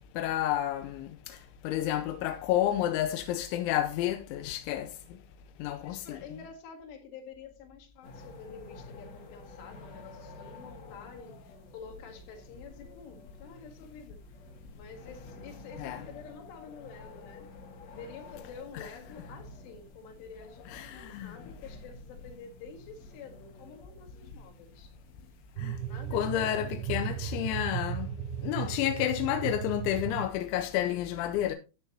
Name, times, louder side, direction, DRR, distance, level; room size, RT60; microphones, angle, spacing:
voice 1, 0.1-5.2 5.6-6.2 15.8-16.0 18.7-18.9 20.7-21.4 25.6-25.8 26.1-28.1 28.4-31.6, left 12 dB, 90° left, 3.1 m, -30 dB
voice 2, 5.8-14.2 14.8-17.5 17.9-24.9 25.9-26.7, left 5 dB, 70° left, 4.0 m, -48 dB
sound 1, 8.0-27.2, left 3 dB, 55° left, 2.0 m, -51 dB
sound 2, 25.6-30.3, right 9 dB, 85° right, 2.2 m, -36 dB
13.0 x 8.3 x 2.8 m
omnidirectional pair, 5.2 m